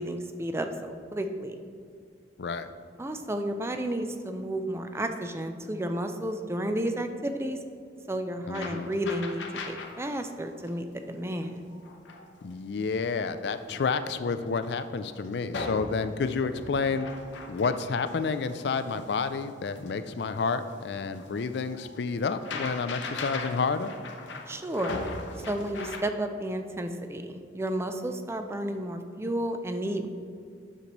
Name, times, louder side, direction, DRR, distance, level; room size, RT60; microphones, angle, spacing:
voice 1, 0.0-1.5 3.0-7.6 8.1-11.6 24.5-25.0 25.5-30.1, right 1 dB, 15° right, 7 dB, 0.4 m, -32 dB
voice 2, 2.4-2.7 8.5-8.9 12.4-17.1 17.5-23.9, left 4 dB, 65° left, 11 dB, 0.4 m, -30 dB
sound 1, 8.5-10.1 10.4-10.7 11.3-12.5 13.0-13.1 13.5-13.6 14.0-15.2 15.5-26.0, left 3 dB, 80° left, 0.8 m, -40 dB
9.7 x 6.6 x 3.0 m, 2.3 s
head